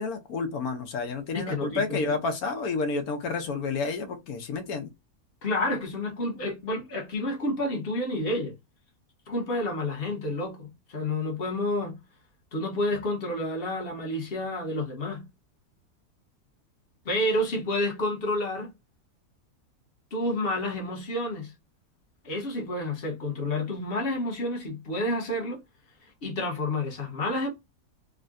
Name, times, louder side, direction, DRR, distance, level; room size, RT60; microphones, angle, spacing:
voice 1, 0.0-4.9, left 4 dB, 80° left, 1.2 m, -30 dB
voice 2, 1.3-2.1 5.4-8.6 9.3-12.0 12.5-15.2 17.0-18.7 20.1-21.5 22.2-25.6 26.0-27.5, left 1 dB, 45° left, 1.1 m, -29 dB
3.7 x 2.1 x 2.4 m
omnidirectional pair, 1.6 m